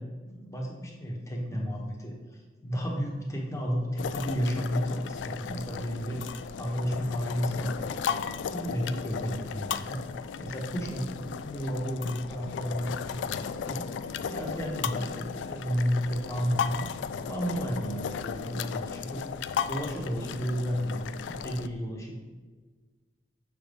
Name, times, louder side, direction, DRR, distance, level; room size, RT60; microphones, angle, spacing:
voice 1, 0.0-8.0 8.5-10.1 10.4-16.9 17.3-22.2, equal, 15° left, -1 dB, 1.0 m, -32 dB
sound 1, 4.0-21.7, left 7 dB, 85° left, 0.3 m, -35 dB
7.0 x 5.3 x 3.5 m, 1.4 s
head